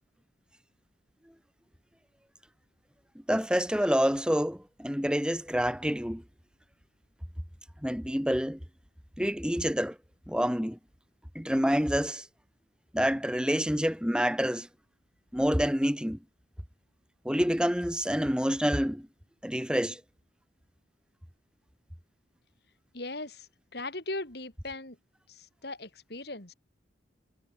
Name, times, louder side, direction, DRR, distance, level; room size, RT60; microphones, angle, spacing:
voice 1, 3.3-6.2 7.8-8.6 9.2-10.0 10.3-10.8 11.3-12.3 12.9-14.7 15.3-16.2 17.2-19.1 19.4-20.0, equal, 5° right, 4.4 m, -27 dB
voice 2, 22.9-25.0 25.3-26.5, left 2 dB, 55° left, 3.9 m, -39 dB
head